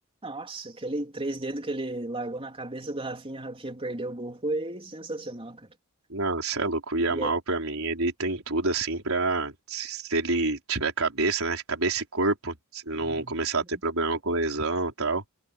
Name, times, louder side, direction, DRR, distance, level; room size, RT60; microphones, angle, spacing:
voice 1, 0.2-5.7 7.1-7.3 12.9-13.4, right 2 dB, 25° right, 3.6 m, -34 dB
voice 2, 6.1-15.2, right 3 dB, 70° right, 5.0 m, -28 dB
head